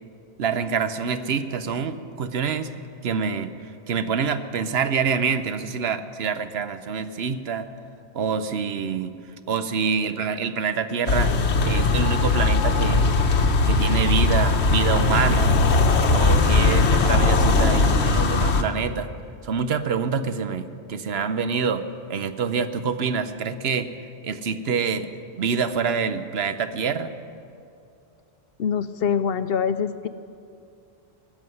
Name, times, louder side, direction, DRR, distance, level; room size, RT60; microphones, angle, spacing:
voice 1, 0.4-2.7 3.0-3.5 3.9-7.7 8.1-9.1 9.5-11.3 11.6-13.1 13.7-15.5 16.1-19.1 19.4-21.8 22.1-23.9 24.2-25.1 25.4-27.1, right 6 dB, 70° right, 10 dB, 1.0 m, -26 dB
sound 1, 11.1-18.6, left 3 dB, 85° left, 1.2 m, -19 dB
voice 2, 28.6-30.1, left 7 dB, 70° left, 12 dB, 0.8 m, -24 dB
18.5 x 7.2 x 9.5 m, 2.5 s
omnidirectional pair, 1.1 m